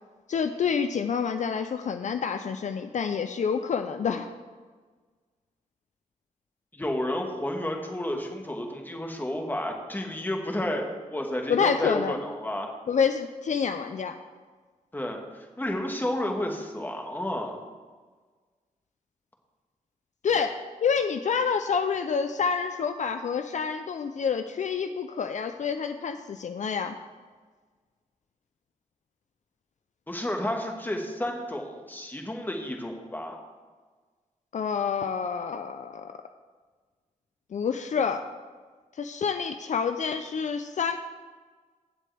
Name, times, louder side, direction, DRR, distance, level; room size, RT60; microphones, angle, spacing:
voice 1, 0.3-4.3 11.5-12.2 12.9-14.1 20.2-26.9 34.5-36.2 37.5-38.2 39.0-41.0, left 6 dB, 60° left, 8 dB, 0.5 m, -28 dB
voice 2, 6.7-12.7 14.9-17.6 30.1-33.4, left 1 dB, 15° left, 2 dB, 1.6 m, -31 dB
15.5 x 7.6 x 3.4 m, 1.4 s
wide cardioid pair, 95°, 14 cm